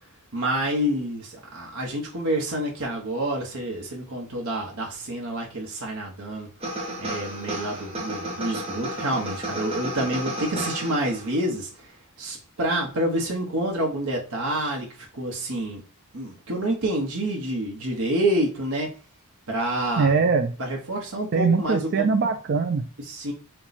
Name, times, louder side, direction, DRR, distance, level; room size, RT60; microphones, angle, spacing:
voice 1, 0.3-6.5 7.0-11.9 12.2-15.8 16.1-18.9 19.5-20.1 20.6-22.1 23.0-23.3, right 1 dB, 75° right, -1 dB, 1.1 m, -28 dB
sound 1, 6.6-11.4, right 1 dB, 25° right, 1.0 m, -32 dB
voice 2, 20.0-20.5 21.3-22.8, right 5 dB, 50° right, 5 dB, 0.4 m, -21 dB
4.4 x 2.3 x 4.0 m, 0.39 s
head